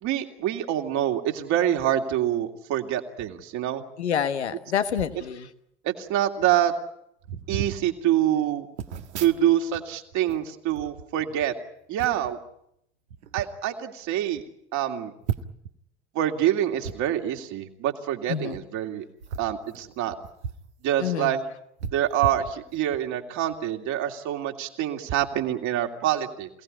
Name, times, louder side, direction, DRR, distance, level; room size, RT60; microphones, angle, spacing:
voice 1, 0.0-3.8 5.8-6.7 7.5-8.7 9.2-11.5 11.9-12.4 13.3-14.4 14.7-15.1 16.1-19.0 19.4-20.1 20.8-21.4 21.9-26.5, right 11 dB, 60° right, 3 dB, 2.9 m, -26 dB
voice 2, 4.0-5.5 18.3-18.6 21.0-21.3, left 8 dB, 80° left, 10 dB, 1.4 m, -27 dB
sound 1, 4.9-5.2 6.1-6.2 6.4-6.6 7.2-7.8 8.8-9.8 10.1-11.5 12.0-12.3 13.1-13.5 14.0-14.1 14.4-14.5 15.2-15.7 16.8-17.0 18.4-18.6 19.2-20.7 21.0-21.1 21.8-23.0 23.5-23.6, right 8 dB, 75° right, 1.6 m, -35 dB
28.0 x 18.0 x 9.8 m, 0.78 s
figure-of-eight pair, 60°, 33 cm